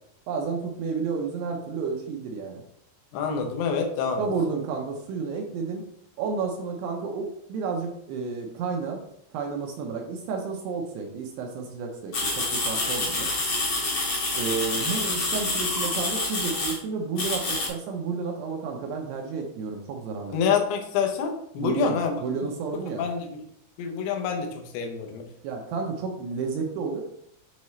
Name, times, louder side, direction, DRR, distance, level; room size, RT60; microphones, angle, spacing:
voice 1, 0.3-2.6 4.2-5.8 6.2-9.0 9.3-13.3 14.3-20.4 21.6-23.0 25.4-27.0, right 5 dB, 75° right, 1 dB, 2.7 m, -31 dB
voice 2, 3.1-4.3 20.3-22.2 22.9-23.4 23.8-25.3, left 6 dB, 75° left, 4 dB, 2.6 m, -27 dB
sound 1, 12.1-16.8 17.2-17.7, left 2 dB, 55° left, 1.6 m, -27 dB
8.3 x 3.7 x 3.1 m, 0.72 s
omnidirectional pair, 5.2 m